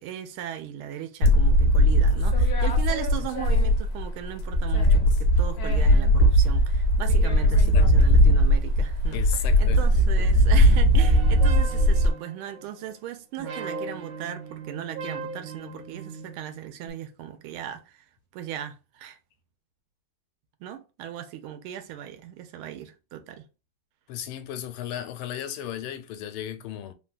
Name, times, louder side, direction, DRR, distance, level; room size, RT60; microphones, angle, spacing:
voice 1, 0.0-18.0 18.3-19.2 20.6-23.4, right 10 dB, 90° right, 1.5 m, -37 dB
sound 1, 1.2-4.1 4.4-12.1, equal, 70° left, 0.9 m, -19 dB
voice 2, 9.1-9.9 10.2-10.3 24.1-26.9, left 10 dB, 85° left, 1.4 m, -35 dB
sound 2, 11.0-12.9 13.4-16.9, right 4 dB, 70° right, 0.8 m, -38 dB
3.5 x 2.2 x 2.4 m
omnidirectional pair, 2.3 m